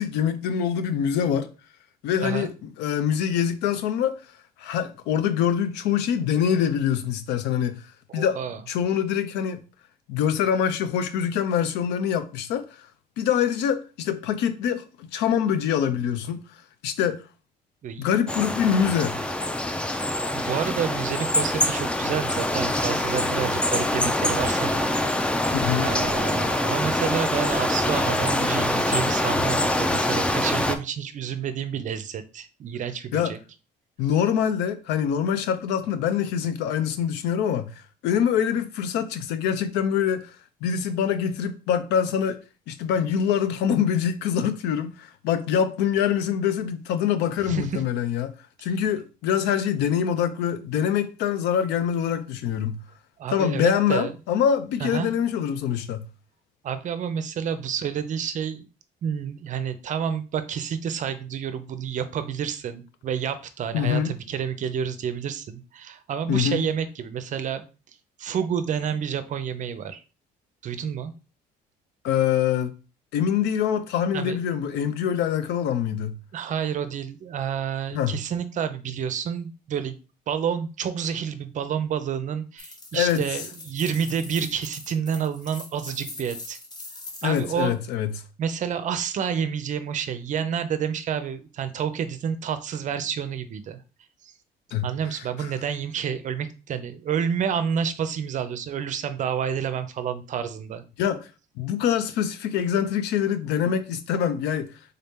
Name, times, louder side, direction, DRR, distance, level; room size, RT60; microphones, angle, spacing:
voice 1, 0.0-1.5 2.0-4.1 4.6-7.8 8.1-8.4 8.7-9.6 10.1-12.9 13.2-16.4 16.8-17.2 18.0-19.2 25.5-25.9 33.1-33.3 34.0-37.7 38.0-40.3 40.6-42.4 42.7-48.3 48.6-52.8 53.3-56.1 63.7-64.1 66.3-66.6 72.0-72.7 73.1-76.2 77.9-78.2 82.9-83.2 87.2-88.1 94.7-94.9 101.0-101.3 101.6-104.7, left 8 dB, 90° left, 0.6 m, -24 dB
voice 2, 2.2-2.5 8.1-8.6 17.8-18.1 20.3-24.9 25.8-33.4 47.4-47.8 48.6-48.7 53.2-54.1 54.8-55.1 56.6-58.7 59.0-67.6 68.2-70.0 70.6-71.1 74.1-74.4 76.3-80.0 80.3-86.6 87.2-87.8 88.4-93.8 94.8-100.8, right 8 dB, 45° right, 0.5 m, -29 dB
sound 1, 18.3-30.7, left 1 dB, 5° left, 0.4 m, -24 dB
sound 2, 82.6-87.7, left 2 dB, 25° left, 0.9 m, -42 dB
3.8 x 2.8 x 3.5 m
cardioid pair, 110°, 17 cm